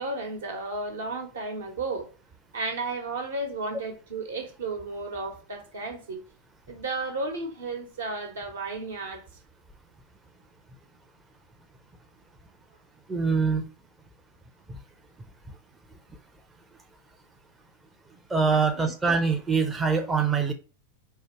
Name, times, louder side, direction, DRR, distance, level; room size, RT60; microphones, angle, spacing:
voice 1, 0.0-2.1 2.5-6.2 6.7-9.2 18.5-18.8, right 3 dB, 65° right, 1.2 m, -33 dB
voice 2, 13.1-13.7 18.3-20.5, right 5 dB, 15° right, 0.6 m, -24 dB
4.6 x 2.6 x 4.2 m
figure-of-eight pair, 90°, 0 cm